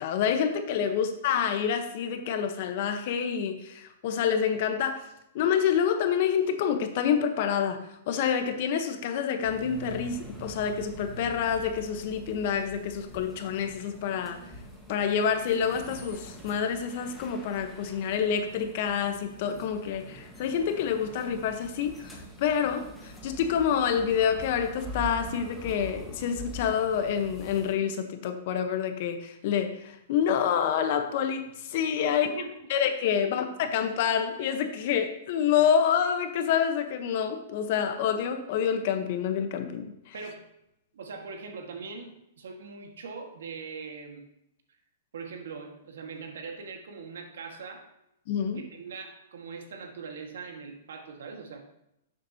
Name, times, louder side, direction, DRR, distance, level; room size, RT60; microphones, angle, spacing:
voice 1, 0.0-5.1 5.3-7.8 8.1-14.4 14.9-32.3 32.7-40.1 48.3-48.6, left 8 dB, 50° left, 7 dB, 1.1 m, -27 dB
sound 1, 9.4-27.7, right 1 dB, ahead, 1.5 m, -44 dB
voice 2, 32.0-32.5 40.1-40.4 40.9-44.2 45.1-47.9 48.6-51.6, right 4 dB, 80° right, 3 dB, 1.7 m, -41 dB
11.5 x 7.4 x 2.9 m, 0.82 s
hypercardioid pair, 155°, 0 cm